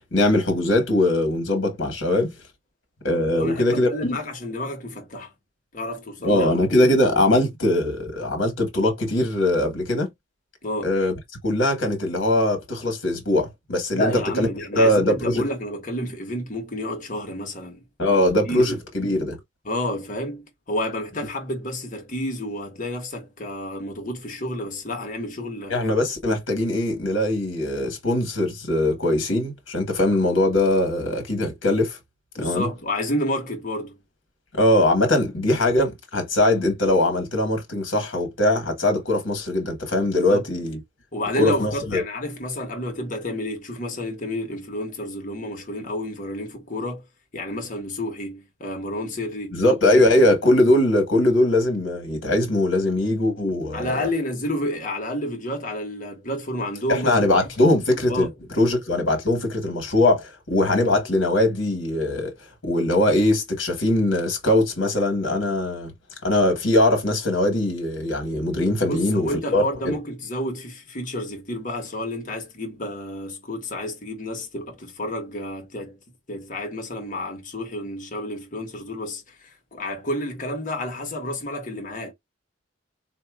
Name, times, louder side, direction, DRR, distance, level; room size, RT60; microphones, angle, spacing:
voice 1, 0.1-2.3 3.0-4.2 6.2-10.1 10.8-11.1 11.4-14.5 14.7-15.4 18.0-19.4 25.7-32.0 32.4-32.7 34.5-40.8 41.4-42.0 49.5-54.0 56.9-58.3 58.6-62.3 62.6-65.9 66.2-69.9, left 1 dB, 65° left, 1.3 m, -21 dB
voice 2, 3.4-5.3 5.7-6.5 10.6-10.9 13.9-17.8 18.5-18.8 19.6-25.8 32.4-34.0 40.1-40.5 41.1-47.0 47.3-49.6 49.9-50.3 53.7-57.2 57.6-57.7 58.1-58.3 68.9-76.0 76.3-82.1, left 1 dB, 40° left, 1.2 m, -30 dB
4.3 x 2.5 x 2.3 m
head